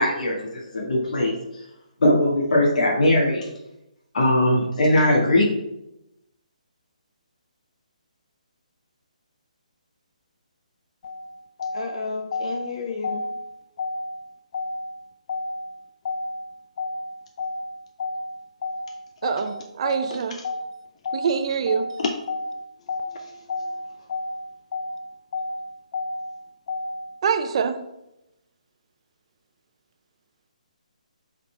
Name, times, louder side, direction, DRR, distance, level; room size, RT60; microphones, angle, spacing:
voice 1, 0.0-1.3 2.0-3.5 4.1-5.4, left 1 dB, 70° left, -3 dB, 1.7 m, -20 dB
voice 2, 11.0-20.7 21.0-21.3 21.7-27.2, left 3 dB, 50° left, 4 dB, 0.6 m, -32 dB
voice 3, 19.2-20.4 21.1-21.9 27.2-27.8, right 6 dB, 45° right, 9 dB, 0.6 m, -25 dB
8.1 x 3.9 x 3.3 m, 0.89 s
hypercardioid pair, 155°, 4 cm